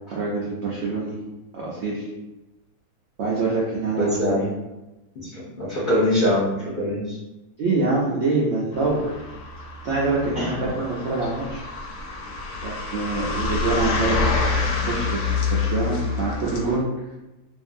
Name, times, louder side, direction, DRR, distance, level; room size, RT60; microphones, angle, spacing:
voice 1, 0.1-1.2 1.5-2.1 3.2-4.4 7.6-9.1 9.8-11.6 12.6-14.3 14.9-16.8, right 3 dB, 85° right, -5 dB, 0.6 m, -25 dB
voice 2, 4.0-4.5 5.1-7.2 10.3-10.7, left 1 dB, 55° left, -8 dB, 0.5 m, -23 dB
sound 1, 8.7-16.8, left 4 dB, 75° left, 1.0 m, -27 dB
2.7 x 2.6 x 2.5 m, 1.0 s
omnidirectional pair, 1.8 m